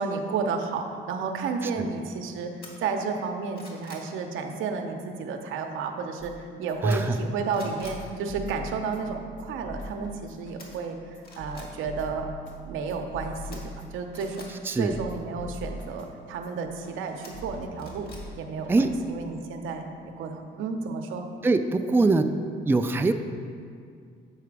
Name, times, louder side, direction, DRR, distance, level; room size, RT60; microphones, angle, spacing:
voice 1, 0.0-11.0 11.4-12.3 12.6-14.5 14.8-18.1 18.4-21.3, right 5 dB, 85° right, 4 dB, 0.7 m, -32 dB
sound 1, 2.6-2.7 3.2-4.1 6.9-7.2 7.5-8.0 10.6-10.7 11.2-11.7 13.5-14.5 17.2-18.2 18.6-18.7, left 2 dB, 50° left, 1.8 m, -47 dB
sound 2, 6.2-19.2, left 1 dB, 70° left, 1.2 m, -43 dB
voice 2, 6.8-7.1 14.6-15.0 18.7-19.0 21.4-22.4 22.7-23.1, right 3 dB, 10° right, 7 dB, 0.3 m, -23 dB
7.8 x 4.9 x 4.7 m, 2.2 s
cardioid pair, 90°, 20 cm